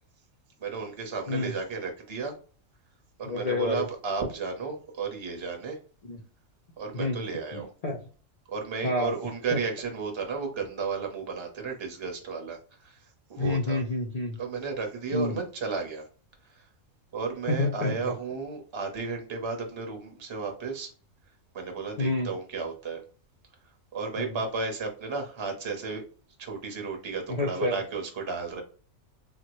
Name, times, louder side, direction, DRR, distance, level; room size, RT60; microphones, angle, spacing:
voice 1, 0.6-2.3 3.2-5.8 6.8-7.7 8.5-13.8 14.4-16.0 16.4-16.7 17.1-20.9 21.5-23.0 23.9-26.0 26.4-28.6, right 4 dB, 30° right, 3 dB, 0.6 m, -33 dB
voice 2, 3.2-3.8 6.0-6.2 6.9-7.2 7.5-8.0 8.8-9.1 13.4-14.4 15.1-15.4 17.5-18.1 22.0-22.3 24.2-24.4 27.3-27.8, left 2 dB, 65° left, 1 dB, 0.3 m, -29 dB
3.7 x 2.1 x 3.0 m, 0.40 s
omnidirectional pair, 1.4 m